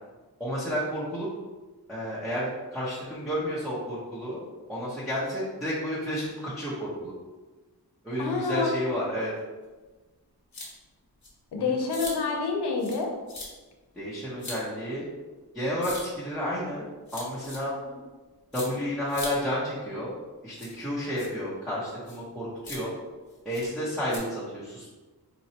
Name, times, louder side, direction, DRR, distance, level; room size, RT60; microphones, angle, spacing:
voice 1, 0.4-1.3 1.9-4.4 4.7-7.1 8.0-9.3 11.6-11.7 14.0-15.1 15.5-16.8 17.1-17.7 18.5-20.1 20.4-22.9 23.4-24.9, equal, ahead, -11 dB, 0.8 m, -31 dB
voice 2, 8.2-8.7 11.5-13.1 17.9-18.0, left 4 dB, 90° left, 1 dB, 0.7 m, -28 dB
sound 1, 10.5-10.7 11.2-11.3 11.9-12.1 12.8-13.0 13.3-13.5 14.4-14.6 15.8-16.0 17.1-17.6 18.5-18.7 19.1-19.3 20.5-20.7 21.2-21.3 22.1-22.2 22.6-22.8 23.5-23.7 24.1-24.2, left 2 dB, 45° left, 1.1 m, -39 dB
4.1 x 2.2 x 2.8 m, 1.2 s
wide cardioid pair, 105°, 39 cm